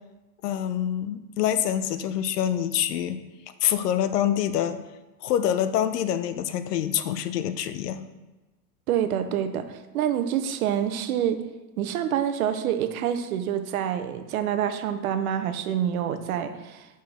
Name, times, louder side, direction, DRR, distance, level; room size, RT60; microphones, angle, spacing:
voice 1, 0.4-3.2 3.6-4.8 5.2-8.0, left 10 dB, 75° left, 11 dB, 0.8 m, -26 dB
voice 2, 8.9-9.6 9.9-11.4 11.8-16.9, right 9 dB, 60° right, 9 dB, 0.8 m, -27 dB
6.0 x 5.3 x 5.2 m, 1.1 s
supercardioid pair, 150°, 48 cm